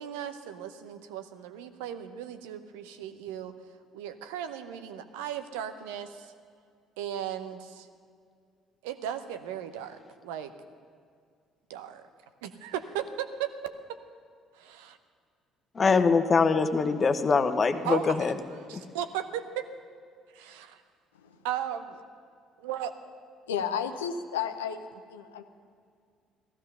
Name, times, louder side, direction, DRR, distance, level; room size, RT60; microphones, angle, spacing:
voice 1, 0.0-3.5 3.9-6.3 7.0-7.9 8.8-10.5 11.7-12.0 12.4-13.7 14.6-15.0 17.8-18.3 18.7-19.7 20.3-20.8 21.4-22.0 22.6-22.9, right 9 dB, 75° right, 10 dB, 0.8 m, -36 dB
voice 2, 15.8-18.3 18.7-18.8, left 4 dB, 35° left, 10 dB, 1.1 m, -23 dB
voice 3, 23.5-24.8 25.1-25.4, left 7 dB, 80° left, 8 dB, 0.8 m, -32 dB
16.0 x 15.0 x 5.6 m, 2.1 s
figure-of-eight pair, 50°, 0 cm